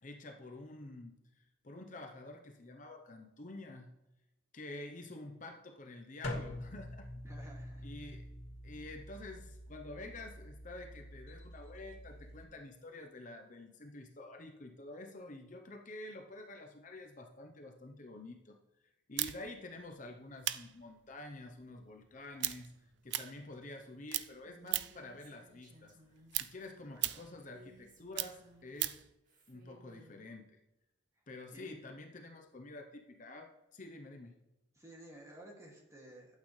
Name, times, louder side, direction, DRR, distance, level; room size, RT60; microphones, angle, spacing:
voice 1, 0.0-3.9 4.5-7.1 7.8-8.3 8.6-18.6 19.1-22.7 23.0-26.0 26.4-29.0 29.5-30.6 31.3-34.4, left 2 dB, 40° left, 4 dB, 0.8 m, -49 dB
sound 1, 6.2-12.4, left 1 dB, 85° left, 2.0 m, -46 dB
voice 2, 7.2-7.9 26.9-27.3 31.5-31.8 34.8-36.4, right 1 dB, 15° right, -1 dB, 2.3 m, -54 dB
sound 2, 19.2-23.8 24.1-25.1 25.5-29.1, right 15 dB, 65° right, 0.4 m, -38 dB
Female speech woman speaking, 24.4-26.4 27.4-28.8 29.2-30.2, equal, 45° right, 2.4 m, -61 dB
12.0 x 8.5 x 3.2 m, 0.97 s
head